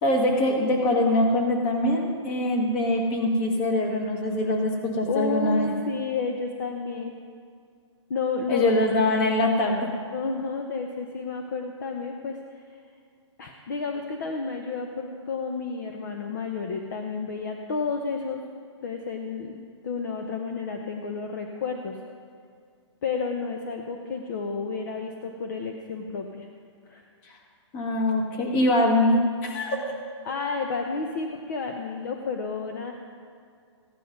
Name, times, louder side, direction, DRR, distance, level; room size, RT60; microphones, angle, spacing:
voice 1, 0.0-5.7 8.5-9.9 27.7-29.9, left 1 dB, 20° left, 2 dB, 1.6 m, -23 dB
voice 2, 5.1-7.2 8.1-8.6 10.1-12.4 13.4-18.4 18.8-22.0 23.0-26.5 26.9-27.1 30.2-32.9, left 4 dB, 40° left, 3 dB, 0.9 m, -31 dB
15.5 x 10.0 x 5.3 m, 2.2 s
hypercardioid pair, 165°, 16 cm